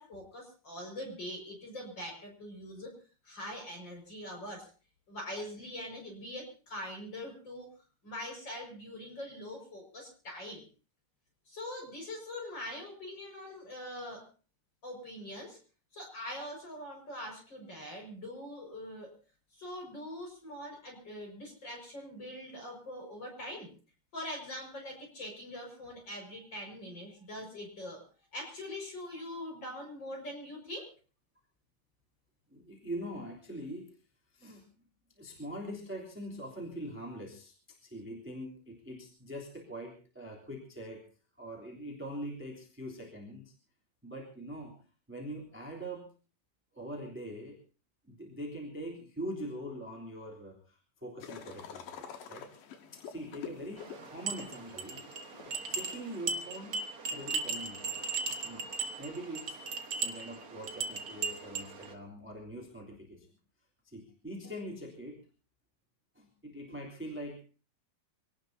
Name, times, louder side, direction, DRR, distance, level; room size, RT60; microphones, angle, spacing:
voice 1, 0.0-3.0 3.2-4.7 5.1-7.7 8.0-10.6 11.5-14.2 14.8-15.6 15.9-19.2 19.5-23.7 24.1-30.9, left 1 dB, 30° left, 1 dB, 6.1 m, -43 dB
voice 2, 32.5-33.9 34.3-34.6 35.2-37.5 37.8-41.0 41.4-43.5 44.0-44.7 45.1-46.1 46.7-47.6 48.0-52.5 52.9-55.0 55.4-56.8 57.1-58.0 58.4-58.7 59.0-59.6 60.0-63.3 63.8-65.2 66.1-67.4, equal, 5° right, -1 dB, 2.8 m, -43 dB
sound 1, 51.2-56.3, left 7 dB, 85° left, 3.1 m, -48 dB
sound 2, 53.8-61.9, right 4 dB, 50° right, 1.0 m, -38 dB
25.5 x 18.0 x 2.8 m, 0.36 s
omnidirectional pair, 3.8 m